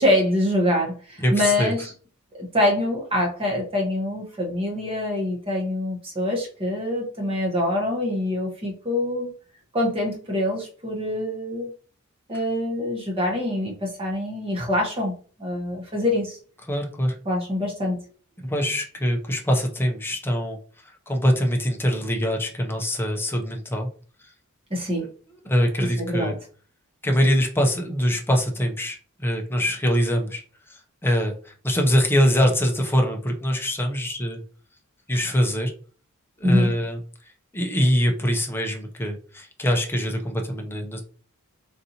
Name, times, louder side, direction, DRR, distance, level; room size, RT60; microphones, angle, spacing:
voice 1, 0.0-1.9 2.4-9.3 9.7-11.7 12.3-15.1 15.4-16.4 17.2-18.0 24.7-25.1 25.8-26.3 36.4-36.7, left 1 dB, 25° right, -1 dB, 1.0 m, -25 dB
voice 2, 1.2-1.7 16.7-17.2 18.4-20.6 20.8-23.9 25.0-25.1 25.5-26.4 27.0-30.4 30.7-34.4 35.1-35.7 36.4-37.0 37.5-41.0, equal, 10° left, 2 dB, 0.6 m, -23 dB
4.0 x 2.6 x 2.8 m, 0.41 s
head